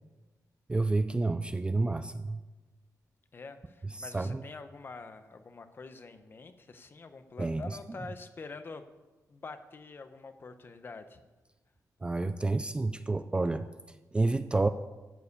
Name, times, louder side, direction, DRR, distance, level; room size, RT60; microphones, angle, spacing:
voice 1, 0.7-2.4 4.0-4.4 7.4-7.7 12.0-13.7 14.1-14.7, right 3 dB, 15° right, 11 dB, 0.3 m, -29 dB
voice 2, 3.3-8.8 9.3-11.2, left 4 dB, 35° left, 9 dB, 0.8 m, -46 dB
13.5 x 4.8 x 8.0 m, 1.2 s
wide cardioid pair, 145°, 6 cm